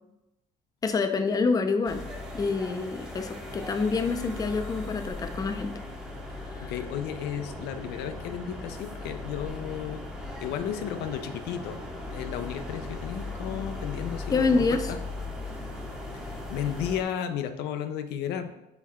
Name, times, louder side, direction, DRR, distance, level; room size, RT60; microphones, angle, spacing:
voice 1, 0.8-2.0 2.3-5.7 6.5-6.7 14.3-14.8, left 4 dB, 20° left, 7 dB, 0.4 m, -27 dB
sound 1, 1.9-17.0, left 2 dB, 5° right, 0.7 m, -38 dB
voice 2, 6.3-10.0 10.4-15.0 16.1-18.6, left 9 dB, 80° left, 8 dB, 0.4 m, -34 dB
4.0 x 3.1 x 4.2 m, 0.93 s
cardioid pair, 110°, 17 cm